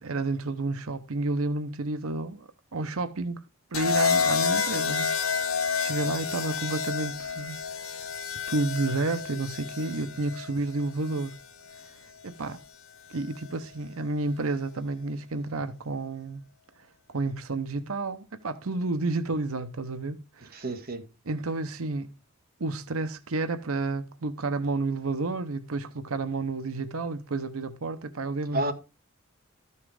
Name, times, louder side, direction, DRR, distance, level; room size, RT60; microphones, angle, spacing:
voice 1, 0.0-3.4 3.7-5.1 5.4-5.5 5.8-7.6 8.5-11.4 12.2-12.6 13.1-16.4 17.1-20.6 21.3-22.2 22.6-28.6, right 3 dB, 85° right, 0.9 m, -31 dB
sound 1, 3.7-11.9 13.1-13.5, left 6 dB, 85° left, 1.1 m, -30 dB
voice 2, 20.5-21.1 28.5-28.7, right 1 dB, 45° right, 1.8 m, -30 dB
13.5 x 5.7 x 4.8 m
head